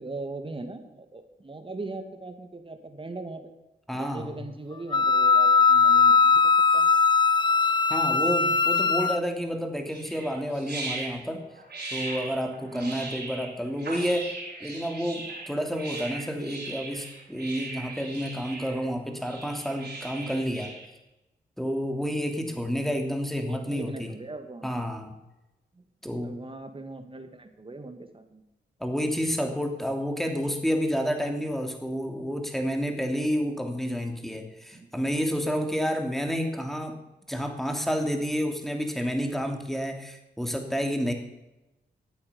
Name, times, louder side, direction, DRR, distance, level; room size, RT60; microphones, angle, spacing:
voice 1, 0.0-3.5 3.9-6.9 12.6-13.1 22.5-22.7 23.4-24.7 25.7-25.8 26.2-28.4 34.7-34.9, right 2 dB, 30° right, 7 dB, 2.2 m, -40 dB
voice 2, 3.9-4.3 7.9-11.4 11.9-20.7 21.6-24.1 24.6-25.1 26.0-26.4 28.8-37.0 37.3-41.1, equal, ahead, 4 dB, 3.0 m, -30 dB
Wind instrument woodwind instrument, 4.9-9.2, left 5 dB, 25° left, 0.5 m, -20 dB
sound 1, 9.9-20.9, right 2 dB, 65° right, 5.5 m, -39 dB
13.5 x 8.7 x 7.0 m, 0.98 s
cardioid pair, 60°, 18 cm